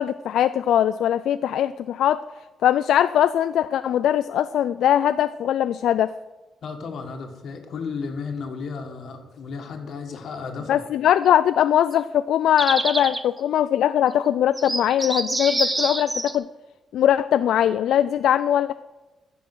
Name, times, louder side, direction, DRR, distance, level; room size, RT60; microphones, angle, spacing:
voice 1, 0.0-6.1 10.7-16.5 16.9-18.7, left 10 dB, 85° left, 12 dB, 0.3 m, -21 dB
voice 2, 6.6-10.8, left 5 dB, 65° left, 4 dB, 1.8 m, -33 dB
sound 1, 11.9-12.0 12.6-13.2 14.1-14.2 14.5-16.4, right 2 dB, 15° right, 0.7 m, -26 dB
14.5 x 6.9 x 6.1 m, 1.2 s
cardioid pair, 130°, 0 cm